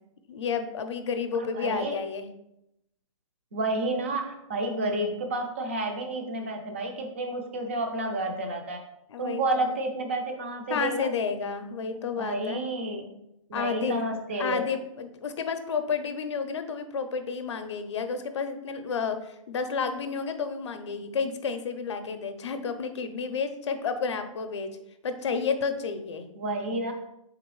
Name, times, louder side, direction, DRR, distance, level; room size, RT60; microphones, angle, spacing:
voice 1, 0.3-2.3 9.1-9.7 10.7-12.6 13.5-14.0 14.4-24.8 25.0-26.3, left 5 dB, 55° left, 8 dB, 0.5 m, -31 dB
voice 2, 1.4-2.0 3.5-8.8 9.2-11.1 12.1-13.1 13.5-14.7 26.4-26.9, right 2 dB, 25° right, 4 dB, 0.4 m, -30 dB
4.4 x 3.8 x 3.1 m, 0.84 s
hypercardioid pair, 175°, 17 cm